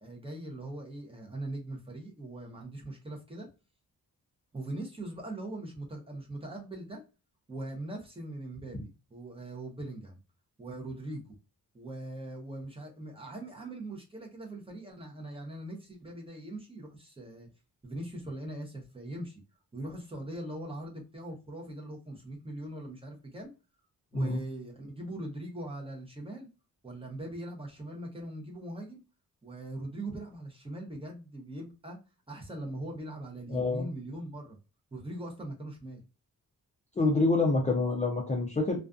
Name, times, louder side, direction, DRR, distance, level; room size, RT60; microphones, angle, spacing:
voice 1, 0.0-3.5 4.5-7.0 7.5-10.2 10.6-11.2 11.7-17.5 17.8-19.4 19.7-23.5 24.1-26.5 26.8-29.0 29.4-32.0 32.3-34.6 34.9-36.0, right 1 dB, 15° right, 0.6 m, -41 dB
voice 2, 33.5-33.9 37.0-38.9, left 3 dB, 20° left, 0.4 m, -27 dB
2.4 x 2.3 x 2.3 m
wide cardioid pair, 160°, 34 cm